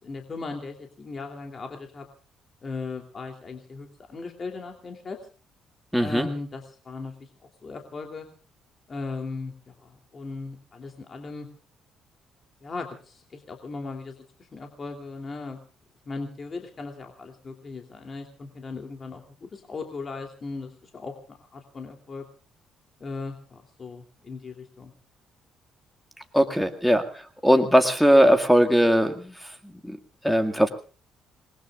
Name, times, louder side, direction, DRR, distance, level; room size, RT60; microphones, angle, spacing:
voice 1, 0.0-2.0 2.6-5.2 6.0-7.3 7.6-8.3 8.9-11.5 12.6-15.6 16.1-22.2 23.0-24.9, left 3 dB, 30° left, 3 dB, 2.9 m, -37 dB
voice 2, 5.9-6.3 26.3-27.0 27.4-29.3 29.9-30.0 30.2-30.7, equal, ahead, 8 dB, 1.9 m, -19 dB
27.5 x 21.0 x 2.4 m, 0.39 s
cardioid pair, 135°, 0 cm